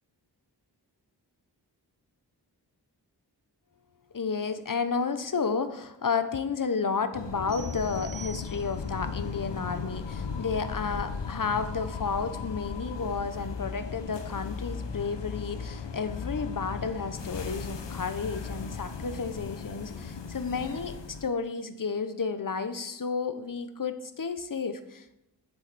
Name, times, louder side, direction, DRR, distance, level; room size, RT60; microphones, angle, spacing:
voice 1, 4.1-25.2, left 5 dB, 50° left, 10 dB, 0.8 m, -32 dB
sound 1, 7.1-21.3, left 5 dB, 90° left, 0.8 m, -37 dB
sound 2, 7.5-9.0, right 6 dB, 30° right, 3.4 m, -46 dB
7.8 x 7.3 x 4.1 m, 0.85 s
cardioid pair, 40°, 41 cm